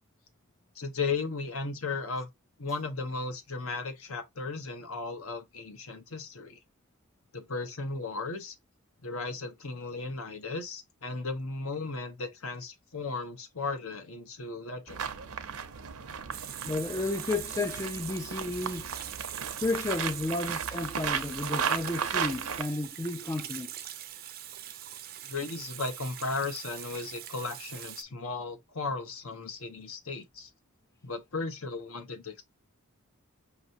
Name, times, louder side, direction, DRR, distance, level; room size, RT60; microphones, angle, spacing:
voice 1, 0.7-2.3 2.6-6.6 7.3-8.5 9.0-15.1 25.2-30.5 31.0-32.4, left 3 dB, 65° left, 1.0 m, -36 dB
sound 1, 14.9-22.6, right 7 dB, 75° right, 0.7 m, -35 dB
Water tap faucet / Sink (filling or washing), 16.3-28.0, right 11 dB, 45° right, 0.5 m, -42 dB
voice 2, 16.6-18.9 19.6-23.9, left 2 dB, 15° left, 0.3 m, -32 dB
5.4 x 2.9 x 2.6 m
head